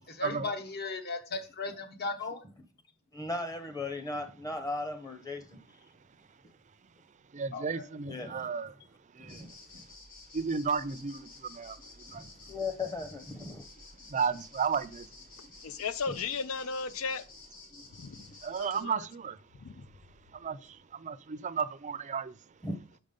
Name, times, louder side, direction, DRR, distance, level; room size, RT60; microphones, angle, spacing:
voice 1, 0.1-2.4 7.5-7.8 17.7-17.8, left 3 dB, 50° left, 1.1 m, -37 dB
voice 2, 3.1-5.6 8.1-8.5 9.2-9.8 12.2-13.6 22.6-22.8, left 2 dB, 20° left, 0.9 m, -37 dB
voice 3, 7.3-8.7 9.1-9.5 10.3-12.2 14.1-15.1 18.4-19.4 20.3-22.4, right 6 dB, 35° right, 0.4 m, -33 dB
sound 1, 9.3-18.8, left 3 dB, 65° left, 2.7 m, -52 dB
voice 4, 15.6-17.2 18.0-18.2 18.6-19.1 19.6-19.9, left 5 dB, 80° left, 0.6 m, -35 dB
6.1 x 5.3 x 5.2 m
head